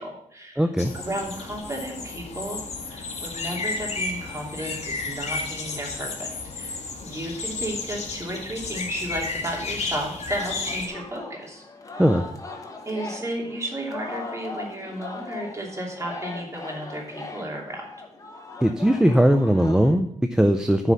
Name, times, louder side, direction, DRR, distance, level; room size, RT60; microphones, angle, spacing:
voice 1, 0.0-0.7 0.9-11.6 11.9-12.0 12.8-17.9, right 1 dB, 20° right, -2 dB, 2.9 m, -33 dB
voice 2, 0.6-0.9 12.0-12.3 18.6-20.9, equal, 5° right, 7 dB, 0.5 m, -19 dB
sound 1, 0.8-10.9, left 3 dB, 50° left, 1.9 m, -32 dB
Singing, 10.3-20.0, left 3 dB, 25° left, 1.4 m, -39 dB
9.8 x 4.8 x 6.8 m, 0.73 s
wide cardioid pair, 110°, 14 cm